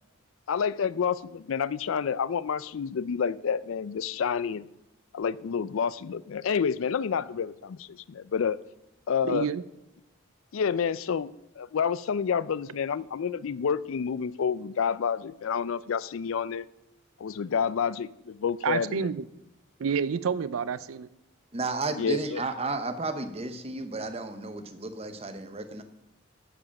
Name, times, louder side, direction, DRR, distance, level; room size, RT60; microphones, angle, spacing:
voice 1, 0.5-4.7 5.1-8.6 9.1-9.5 10.5-11.3 11.6-16.7 17.2-19.1 22.0-22.4, left 6 dB, 75° left, 18 dB, 0.4 m, -29 dB
voice 2, 9.2-9.6 18.6-19.2 19.8-21.1, right 6 dB, 80° right, 16 dB, 0.4 m, -29 dB
voice 3, 21.5-25.8, right 3 dB, 30° right, 8 dB, 0.9 m, -33 dB
14.0 x 5.0 x 5.9 m, 0.91 s
head